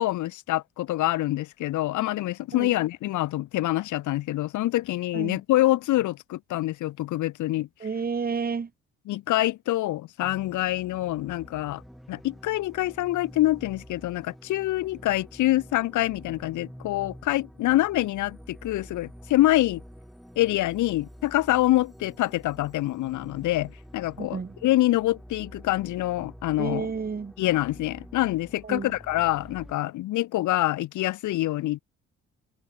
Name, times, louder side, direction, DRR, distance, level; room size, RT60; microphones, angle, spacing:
voice 1, 0.0-7.7 9.1-11.8 12.1-19.8 20.4-26.9 27.4-31.8, left 16 dB, 80° left, 0.8 m, -26 dB
voice 2, 7.8-8.7 24.2-24.5 26.6-27.3 28.6-28.9, right 5 dB, 30° right, 1.7 m, -30 dB
sound 1, 10.2-29.7, equal, ahead, 4.4 m, -48 dB
cardioid pair, 90°, 30 cm